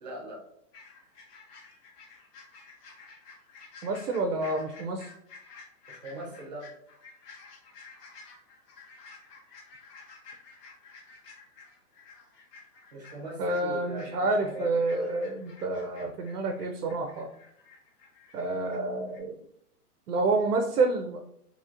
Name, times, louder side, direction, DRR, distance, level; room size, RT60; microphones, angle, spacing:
voice 1, 0.0-0.4 5.9-6.6 12.9-14.7, equal, 30° right, -3 dB, 0.6 m, -40 dB
sound 1, 0.7-18.8 19.1-19.2, left 4 dB, 85° left, 1.4 m, -52 dB
voice 2, 3.8-5.1 13.4-17.3 18.3-19.4 20.1-21.2, right 3 dB, 70° right, 5 dB, 0.5 m, -28 dB
2.9 x 2.7 x 2.4 m, 0.71 s
hypercardioid pair, 175°, 46 cm